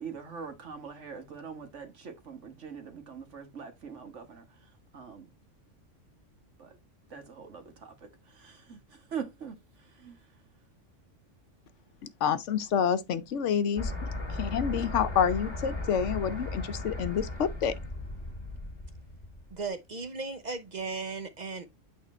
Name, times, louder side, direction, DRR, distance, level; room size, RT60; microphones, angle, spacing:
voice 1, 0.0-4.5 4.9-5.3 7.1-7.9 8.3-10.2, right 6 dB, 70° right, 1.7 m, -42 dB
voice 2, 12.2-13.8 14.4-17.7, left 8 dB, 70° left, 1.0 m, -28 dB
sound 1, 13.8-19.6, left 2 dB, 20° left, 3.5 m, -36 dB
voice 3, 19.5-21.7, right 4 dB, 40° right, 0.7 m, -36 dB
8.5 x 3.7 x 4.2 m
omnidirectional pair, 1.3 m